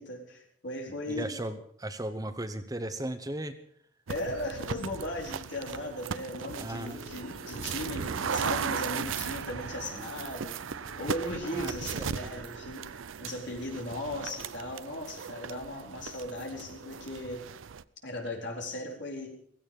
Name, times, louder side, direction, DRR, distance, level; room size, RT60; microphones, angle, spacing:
voice 1, 0.0-1.4 4.1-17.4 18.0-19.3, left 1 dB, 60° left, 0 dB, 4.1 m, -37 dB
voice 2, 1.1-3.5 6.6-7.0 11.5-12.4, right 1 dB, 20° right, 9 dB, 0.9 m, -36 dB
sound 1, 4.1-17.8, right 6 dB, 80° right, 0.6 m, -37 dB
Gurgling / Car passing by / Sink (filling or washing), 6.4-12.1, left 1 dB, 40° left, 6.1 m, -51 dB
16.0 x 16.0 x 5.3 m, 0.66 s
head